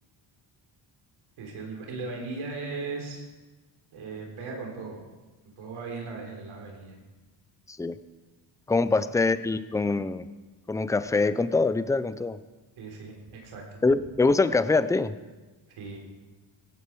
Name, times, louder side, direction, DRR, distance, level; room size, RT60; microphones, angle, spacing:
voice 1, 1.4-3.2 3.9-5.0 5.6-7.0 8.9-9.0 12.8-13.8 15.8-16.0, right 4 dB, 80° right, 1 dB, 4.0 m, -37 dB
voice 2, 8.7-10.3 10.7-12.4 13.8-15.2, left 3 dB, 5° left, 13 dB, 0.6 m, -24 dB
16.0 x 16.0 x 4.8 m, 1.2 s
cardioid pair, 105°, 48 cm